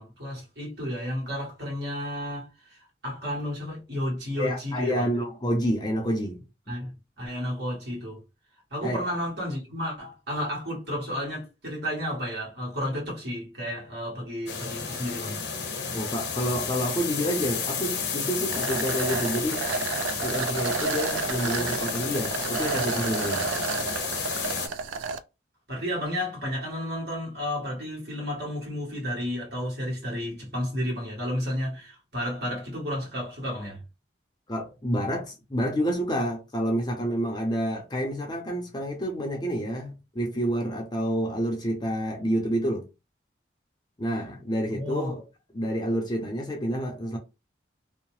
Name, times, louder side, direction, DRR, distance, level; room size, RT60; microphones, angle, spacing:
voice 1, 0.0-5.1 6.7-8.2 8.7-15.4 25.7-33.8 44.7-45.1, equal, 55° right, 1.5 m, -32 dB
voice 2, 4.4-6.4 8.8-9.1 15.9-19.6 20.2-23.6 34.5-42.9 44.0-45.2 45.5-47.2, equal, 20° left, 0.6 m, -28 dB
sound 1, 14.5-24.7, left 5 dB, 65° left, 0.7 m, -31 dB
sound 2, 18.5-25.2, right 5 dB, 85° right, 0.3 m, -31 dB
2.7 x 2.1 x 3.1 m
head